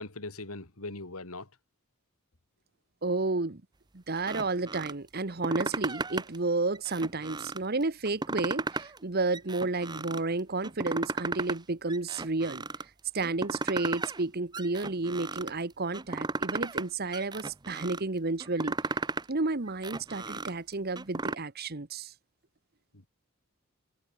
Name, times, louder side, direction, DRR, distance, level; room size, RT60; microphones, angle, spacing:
voice 1, 0.0-1.5 22.9-23.1, left 2 dB, 85° left, 3.2 m, -40 dB
voice 2, 3.0-3.6 3.9-12.6 13.1-18.8 19.3-22.1, right 3 dB, 45° right, 1.2 m, -31 dB
sound 1, 4.2-4.9 5.3-6.4 6.7-7.6 8.0-9.0 9.3-10.2 10.6-11.6 11.9-12.8 13.2-14.2 14.5-15.5 15.9-16.9 17.1-18.0 18.4-19.3 19.7-21.3, right 3 dB, 20° right, 0.8 m, -35 dB
head